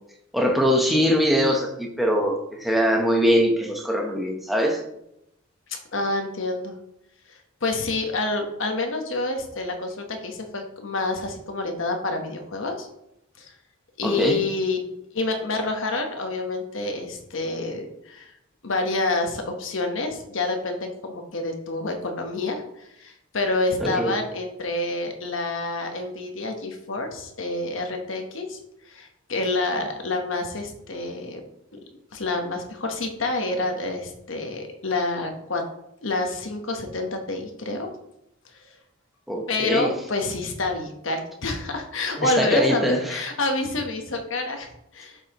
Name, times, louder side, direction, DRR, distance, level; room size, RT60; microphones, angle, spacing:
voice 1, 0.3-4.8 14.0-14.4 23.8-24.1 39.3-39.9 42.2-43.2, equal, ahead, 0 dB, 0.9 m, -22 dB
voice 2, 5.7-6.7 7.3-12.9 13.4-13.5 14.0-14.8 15.1-18.3 18.6-28.6 28.8-31.4 31.7-31.8 32.1-35.7 36.0-37.9 38.5-38.8 39.5-45.2, left 2 dB, 70° left, 4 dB, 1.1 m, -28 dB
8.0 x 5.5 x 3.0 m, 0.81 s
head